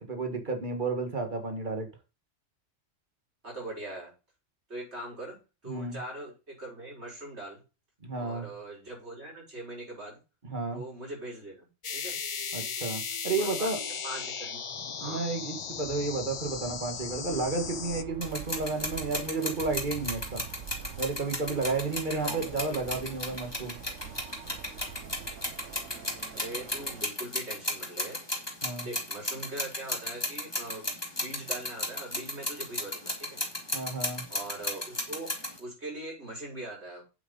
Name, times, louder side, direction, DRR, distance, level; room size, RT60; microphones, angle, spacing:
voice 1, 0.0-1.9 5.7-6.0 8.0-8.5 10.4-10.8 12.5-13.8 15.0-20.5 21.0-23.8 28.6-28.9 33.7-34.2, right 3 dB, 40° right, 4 dB, 1.9 m, -32 dB
voice 2, 3.4-4.1 4.7-7.6 8.1-10.2 10.7-11.7 11.9-12.2 13.4-13.7 14.0-14.6 15.0-15.2 26.3-28.2 28.8-33.4 34.3-37.0, right 2 dB, 60° right, -3 dB, 6.1 m, -41 dB
sound 1, 11.8-18.0, left 6 dB, 50° left, 0.3 m, -36 dB
sound 2, 17.3-27.0, right 8 dB, 85° right, 1.3 m, -45 dB
sound 3, 18.2-35.6, left 1 dB, 20° left, 2.1 m, -35 dB
8.8 x 7.9 x 4.0 m, 0.30 s
omnidirectional pair, 1.3 m